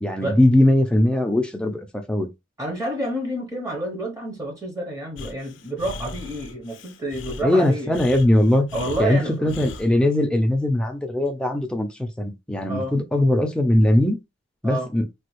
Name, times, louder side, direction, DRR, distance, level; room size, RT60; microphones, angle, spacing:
voice 1, 0.0-2.3 7.4-8.7 9.0-14.2 14.6-15.0, left 1 dB, 5° left, 0.5 m, -20 dB
voice 2, 2.6-7.9 8.7-9.5 12.7-12.9 14.6-14.9, right 1 dB, 15° right, 0.9 m, -29 dB
Breathing, 5.2-9.9, left 3 dB, 65° left, 0.5 m, -37 dB
3.3 x 2.3 x 3.1 m
head